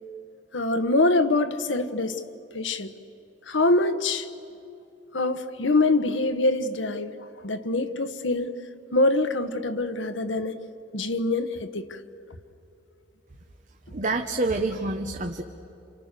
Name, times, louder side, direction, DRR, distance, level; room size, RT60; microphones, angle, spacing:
voice 1, 0.5-2.2 2.5-2.9 3.5-4.3 5.1-8.5 8.9-10.6 10.9-12.0, left 2 dB, 85° left, 8 dB, 1.3 m, -24 dB
voice 2, 13.9-15.4, right 2 dB, 45° right, 5 dB, 1.1 m, -27 dB
30.0 x 28.0 x 6.8 m, 2.7 s
head